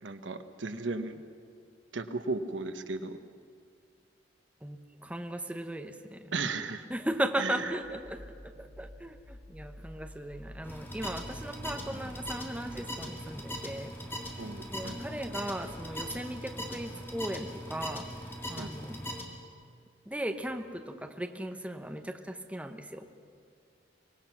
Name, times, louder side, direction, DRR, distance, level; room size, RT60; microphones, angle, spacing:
voice 1, 0.0-1.2 1.9-3.2 6.3-6.9 7.4-7.7 14.4-15.0 18.6-18.7, right 3 dB, 85° right, 9 dB, 1.1 m, -35 dB
voice 2, 4.6-6.3 6.9-8.3 8.6-13.9 14.7-18.1 18.5-19.1 20.1-23.1, right 1 dB, 5° right, 6 dB, 0.9 m, -37 dB
sound 1, 7.6-13.0, equal, 90° left, 6.2 m, -50 dB
sound 2, 10.6-19.2, equal, 10° left, 2.1 m, -40 dB
24.5 x 19.5 x 6.1 m, 2.2 s
head